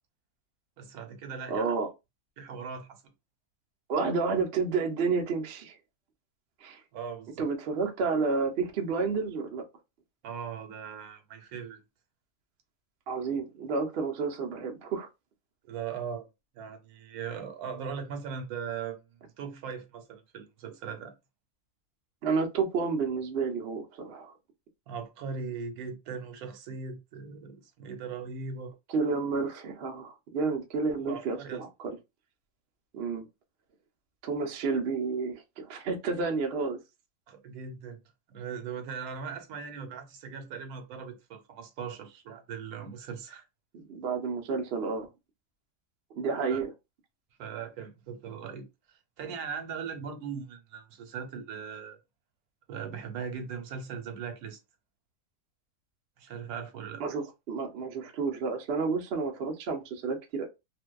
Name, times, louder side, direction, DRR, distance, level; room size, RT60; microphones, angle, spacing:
voice 1, 0.8-1.7 2.4-3.0 6.9-7.5 10.2-11.8 15.6-16.3 16.5-19.0 19.4-21.1 24.9-28.7 31.0-31.6 37.3-38.0 38.3-43.4 46.5-46.6 47.4-52.0 52.7-54.6 56.2-57.0, right 6 dB, 90° right, 1.1 m, -39 dB
voice 2, 1.5-1.9 3.9-5.8 6.6-6.8 7.4-9.6 13.1-15.1 22.2-24.3 28.9-31.7 32.9-33.3 34.2-36.8 43.7-45.1 46.1-46.7 57.0-60.4, right 4 dB, 60° right, 0.6 m, -30 dB
2.6 x 2.1 x 2.2 m
omnidirectional pair, 1.5 m